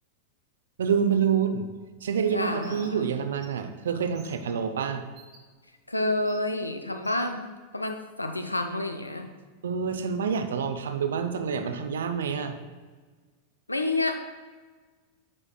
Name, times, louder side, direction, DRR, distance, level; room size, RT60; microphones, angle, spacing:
voice 1, 0.8-1.7 2.0-5.0 9.6-12.6, right 7 dB, 65° right, 8 dB, 0.5 m, -27 dB
voice 2, 2.3-3.1 5.9-9.3 13.7-14.2, left 2 dB, 85° left, 7 dB, 0.5 m, -29 dB
Bird, 2.6-2.9 3.3-3.5 4.1-4.3 5.1-5.4 6.2-6.4 7.0-7.2, right 5 dB, 35° right, 1.2 m, -50 dB
9.6 x 4.9 x 2.3 m, 1.4 s
figure-of-eight pair, 90°, 0 cm